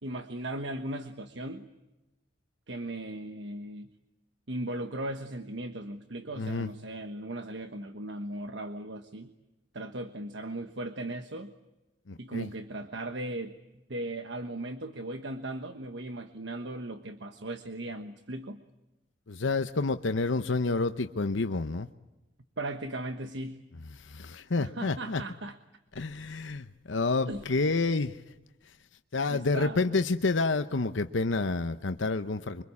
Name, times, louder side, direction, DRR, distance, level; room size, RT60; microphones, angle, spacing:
voice 1, 0.0-1.7 2.7-3.9 4.5-9.3 9.7-11.5 12.2-13.6 13.9-18.6 22.6-23.6 24.6-25.6 27.3-27.4 29.3-29.9, right 1 dB, 70° right, 8 dB, 1.3 m, -37 dB
voice 2, 6.4-6.7 12.1-12.5 19.3-21.9 23.9-25.2 26.0-28.2 29.1-32.6, left 3 dB, 80° left, 9 dB, 0.8 m, -29 dB
25.5 x 24.5 x 8.5 m, 1.0 s
head